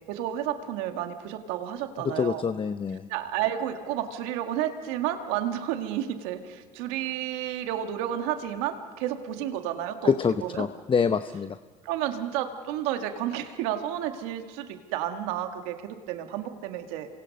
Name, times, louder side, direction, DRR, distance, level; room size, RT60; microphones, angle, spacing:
voice 1, 0.1-2.4 3.1-10.1 10.4-10.7 11.8-17.1, right 11 dB, 80° right, 6 dB, 1.9 m, -31 dB
voice 2, 2.0-3.1 10.0-11.6, left 6 dB, 30° left, 11 dB, 0.8 m, -26 dB
28.0 x 24.5 x 5.4 m, 1.5 s
supercardioid pair, 75°, 17 cm